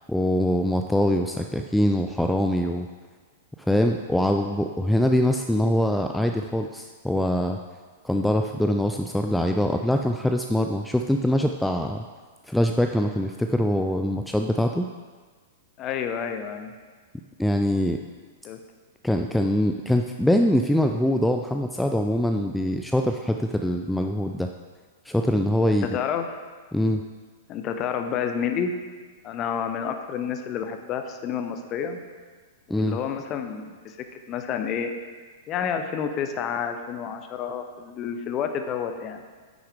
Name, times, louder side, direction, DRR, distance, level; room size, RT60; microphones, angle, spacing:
voice 1, 0.1-2.9 3.6-7.6 8.0-12.0 12.4-14.9 17.4-18.0 19.0-24.5 25.1-25.9 26.7-27.0 32.7-33.0, left 1 dB, 5° left, 4 dB, 0.3 m, -23 dB
voice 2, 15.8-16.7 18.4-18.6 25.9-26.4 27.5-28.7 29.2-32.0 32.7-34.0 34.3-34.9 35.5-39.2, left 7 dB, 30° left, 6 dB, 0.7 m, -29 dB
9.3 x 6.1 x 3.5 m, 1.5 s
figure-of-eight pair, 100°, 0 cm